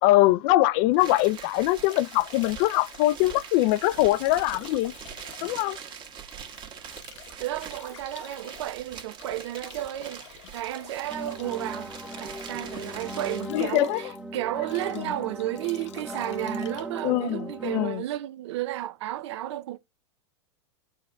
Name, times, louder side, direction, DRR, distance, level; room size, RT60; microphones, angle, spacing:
voice 1, 0.0-4.9 5.4-5.8 13.5-14.0 14.9-15.1 17.0-18.0, left 17 dB, 50° left, 0.4 m, -23 dB
Bathtub (filling or washing) / Drip / Trickle dribble, 0.8-18.1, left 10 dB, 80° left, 1.0 m, -49 dB
sound 1, 0.9-13.6, right 7 dB, 30° right, 1.4 m, -43 dB
voice 2, 7.4-19.8, right 14 dB, 70° right, 0.6 m, -33 dB
sound 2, 11.1-17.9, right 1 dB, 5° right, 0.5 m, -38 dB
12.5 x 4.5 x 2.2 m
hypercardioid pair, 120°, 15 cm